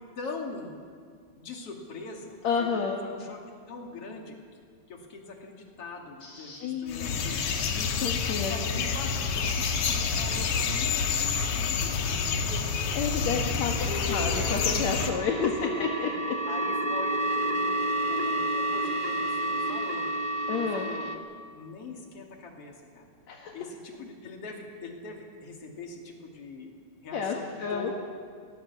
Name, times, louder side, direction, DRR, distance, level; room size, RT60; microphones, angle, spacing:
voice 1, 0.1-0.8 1.4-3.4 3.7-4.6 4.9-7.4 8.4-12.6 13.7-14.4 15.4-16.1 16.5-17.8 18.1-20.1 20.5-21.1 21.5-23.1 23.5-26.8 27.0-27.9, left 3 dB, 50° left, 1 dB, 3.3 m, -41 dB
voice 2, 2.4-3.0 6.2-8.8 12.9-16.1 20.5-20.9 23.3-23.5 27.1-27.9, left 5 dB, 65° left, 1 dB, 2.7 m, -31 dB
sound 1, 6.9-15.1, left 5 dB, 85° left, 2.9 m, -28 dB
sound 2, 9.5-11.3 12.1-21.2, right 2 dB, 25° right, 1.2 m, -31 dB
23.5 x 19.0 x 7.1 m, 2.1 s
omnidirectional pair, 3.4 m